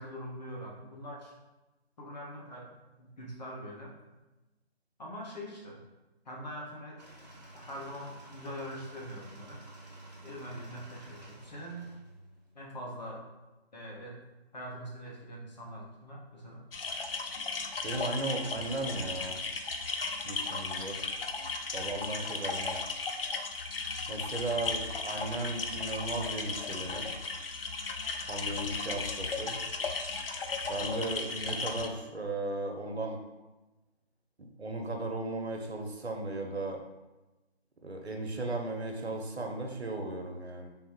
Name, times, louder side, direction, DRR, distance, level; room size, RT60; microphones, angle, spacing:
voice 1, 0.0-1.3 2.0-3.9 5.0-5.8 6.2-7.0 7.5-9.6 10.2-11.9 12.5-13.3 13.7-14.2 14.5-16.6, equal, 40° left, -2 dB, 0.9 m, -43 dB
sound 1, 7.0-12.7, right 1 dB, 40° right, 0.7 m, -51 dB
sound 2, 16.7-31.9, left 4 dB, 65° left, 0.5 m, -36 dB
voice 2, 17.8-19.4 20.2-21.0 21.7-22.8 24.1-27.1 28.3-29.6 30.7-33.2 34.4-36.8 37.8-40.7, right 2 dB, 80° right, 2 dB, 0.8 m, -36 dB
3.5 x 2.2 x 4.3 m, 1.1 s
figure-of-eight pair, 150°, 32 cm